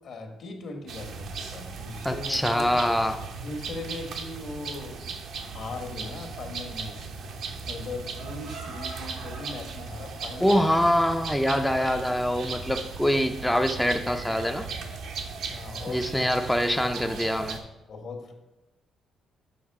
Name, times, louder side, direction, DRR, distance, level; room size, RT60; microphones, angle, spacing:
voice 1, 0.0-2.7 3.4-7.0 7.6-10.7 15.5-16.2 16.6-16.7 17.9-18.3, left 3 dB, 65° left, 3 dB, 1.4 m, -39 dB
sound 1, 0.9-17.6, right 4 dB, 80° right, 0.8 m, -37 dB
voice 2, 2.0-3.2 10.4-14.7 15.9-17.6, equal, 5° left, 5 dB, 0.4 m, -24 dB
6.5 x 5.3 x 4.7 m, 1.0 s
cardioid pair, 90°, 0 cm